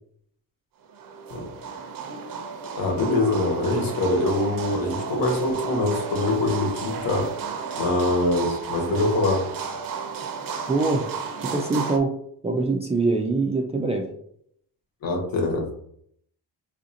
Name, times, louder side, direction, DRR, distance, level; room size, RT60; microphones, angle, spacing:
sound 1, 0.9-12.0, right 6 dB, 60° right, 0.6 m, -33 dB
voice 1, 2.7-7.3 7.8-9.5 15.0-15.8, left 2 dB, 60° left, 2 dB, 1.1 m, -24 dB
voice 2, 10.7-11.0 11.5-12.1 12.4-14.0, right 3 dB, 15° right, 1 dB, 0.3 m, -23 dB
4.9 x 2.5 x 2.7 m, 0.68 s
cardioid pair, 120°, 39 cm